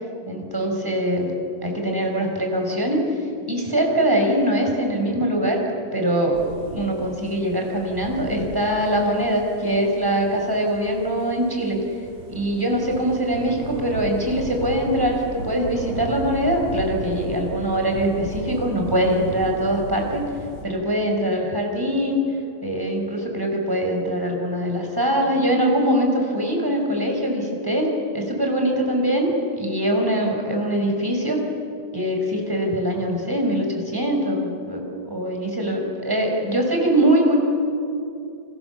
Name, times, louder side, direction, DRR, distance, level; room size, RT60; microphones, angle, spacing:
voice 1, 0.3-1.3 1.6-3.0 3.5-5.6 5.9-6.4 6.7-11.8 12.3-20.2 20.6-22.2 22.6-31.4 31.9-37.4, right 1 dB, 5° right, 1 dB, 4.8 m, -22 dB
sound 1, 6.3-20.6, right 2 dB, 55° right, 7.3 m, -36 dB
29.5 x 27.5 x 7.2 m, 2.6 s
omnidirectional pair, 3.8 m